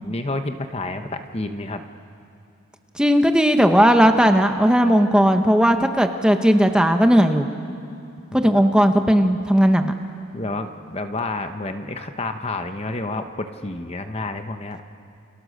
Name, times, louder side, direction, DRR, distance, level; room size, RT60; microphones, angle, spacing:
voice 1, 0.0-1.8 8.5-8.6 10.3-14.8, left 2 dB, 30° left, 7 dB, 0.9 m, -29 dB
voice 2, 3.0-7.5 8.3-9.9, equal, 5° right, 6 dB, 1.0 m, -16 dB
29.5 x 29.0 x 6.6 m, 2.6 s
head